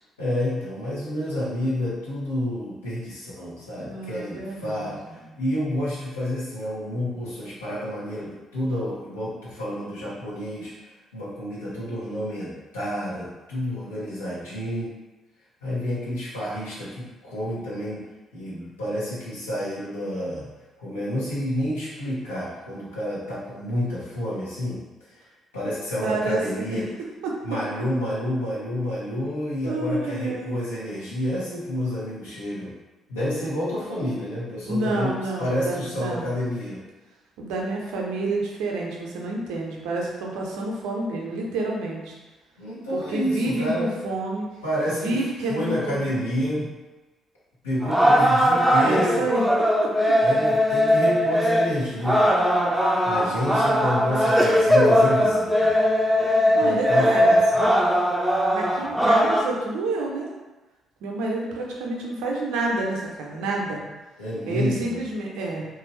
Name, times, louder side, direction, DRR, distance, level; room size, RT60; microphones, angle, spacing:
voice 1, 0.2-14.9 15.6-18.1 18.3-20.5 20.8-24.8 25.1-25.2 25.5-26.9 27.4-32.7 33.1-36.8 42.6-43.9 44.6-45.2 45.5-46.7 47.6-49.2 50.2-52.3 53.0-55.7 56.6-57.6 64.2-65.0, left 1 dB, 80° left, -9 dB, 1.0 m, -29 dB
voice 2, 3.8-5.3 26.0-26.8 27.2-27.3 29.7-30.5 34.7-36.3 37.4-42.1 42.9-44.5 44.9-46.1 48.8-49.4 49.8-49.9 56.5-57.4 58.5-60.3 61.0-63.8 64.5-65.7, right 2 dB, 65° right, -1 dB, 0.5 m, -29 dB
sound 1, 47.8-59.4, equal, 5° right, 0.5 m, -20 dB
3.0 x 2.5 x 3.0 m, 1.1 s
figure-of-eight pair, 45°, 0 cm